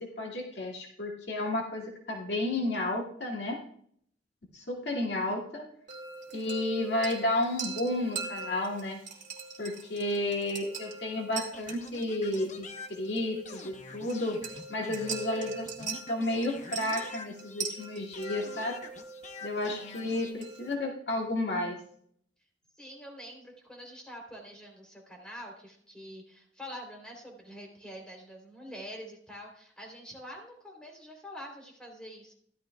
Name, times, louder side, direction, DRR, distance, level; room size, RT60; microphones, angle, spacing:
voice 1, 0.0-3.6 4.5-5.7 6.3-9.0 9.6-14.4 14.7-18.8 19.4-21.8, left 1 dB, 65° left, -1 dB, 2.2 m, -32 dB
sound 1, 5.9-20.7, right 5 dB, 45° right, 2.3 m, -42 dB
sound 2, 11.5-17.8 18.1-20.3, left 3 dB, 40° left, 1.0 m, -46 dB
voice 2, 22.8-32.3, equal, 5° left, 0 dB, 3.4 m, -46 dB
15.0 x 12.5 x 2.3 m, 0.64 s
head